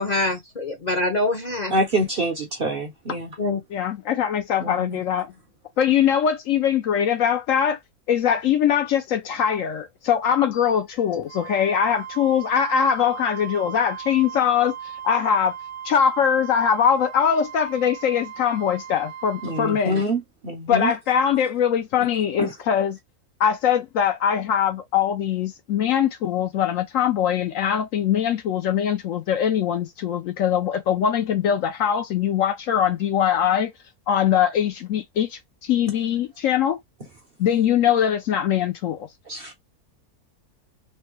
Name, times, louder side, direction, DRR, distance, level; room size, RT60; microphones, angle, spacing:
voice 1, 0.0-1.8 3.4-3.6, left 2 dB, 40° left, 0.7 m, -24 dB
voice 2, 1.7-3.4 4.6-5.0 19.4-20.9 22.4-22.5 39.3-39.5, right 1 dB, 50° right, 0.8 m, -26 dB
voice 3, 3.7-5.3 5.8-7.8 8.1-14.7 15.0-15.5 15.8-20.0 20.7-23.0 23.4-33.7 34.1-36.8 37.4-39.1, left 8 dB, 70° left, 0.9 m, -22 dB
Wind instrument woodwind instrument, 11.3-19.8, right 9 dB, 75° right, 1.0 m, -38 dB
3.3 x 2.2 x 2.9 m
omnidirectional pair, 1.6 m